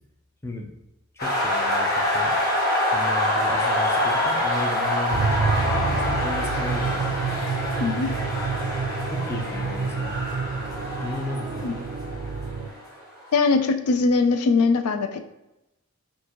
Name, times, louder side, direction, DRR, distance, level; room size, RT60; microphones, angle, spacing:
sound 1, 1.2-12.9, left 1 dB, 45° left, 1.3 m, -26 dB
voice 1, 1.2-2.4 2.9-7.2 9.1-10.2 11.0-11.8, left 2 dB, 10° left, 0 dB, 0.5 m, -34 dB
sound 2, 5.1-12.7, right 5 dB, 80° right, 0.4 m, -28 dB
voice 2, 7.8-8.1 11.6-11.7 13.3-15.2, left 4 dB, 85° left, 7 dB, 0.4 m, -21 dB
6.0 x 2.6 x 2.9 m, 0.91 s
head